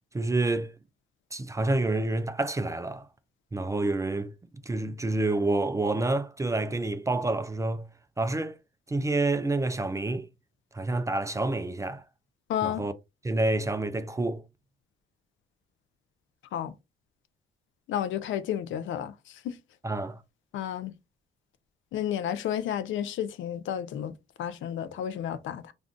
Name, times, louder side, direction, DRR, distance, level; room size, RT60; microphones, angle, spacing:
voice 1, 0.1-0.7 1.3-3.1 3.5-4.3 4.7-7.9 8.2-8.6 8.9-10.3 10.7-12.0 12.6-12.9 13.2-14.4 19.8-20.2, right 2 dB, 15° right, 0.3 m, -28 dB
voice 2, 12.5-12.9 16.5-16.7 17.9-19.6 20.5-20.9 21.9-25.7, left 10 dB, 75° left, 0.5 m, -32 dB
2.5 x 2.3 x 3.6 m
cardioid pair, 90°, 20 cm